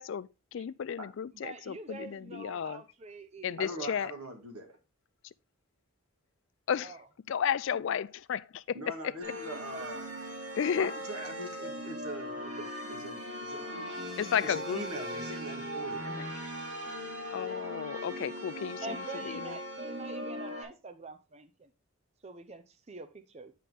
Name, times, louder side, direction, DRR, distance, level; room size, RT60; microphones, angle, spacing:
voice 1, 0.0-2.8 3.4-4.1 5.2-5.3 6.7-7.0 7.3-9.1 10.5-10.9 14.2-14.9 16.0-16.3 17.3-19.6, left 8 dB, 55° left, 0.3 m, -33 dB
voice 2, 1.3-3.9 6.8-7.0 9.7-9.9 18.8-21.7 22.2-23.5, right 3 dB, 30° right, 0.5 m, -45 dB
voice 3, 3.6-4.7 8.7-10.0 10.7-13.8 14.4-16.0, right 1 dB, 85° right, 2.0 m, -42 dB
sound 1, 9.2-20.6, equal, 55° right, 2.8 m, -39 dB
8.4 x 5.9 x 3.4 m
head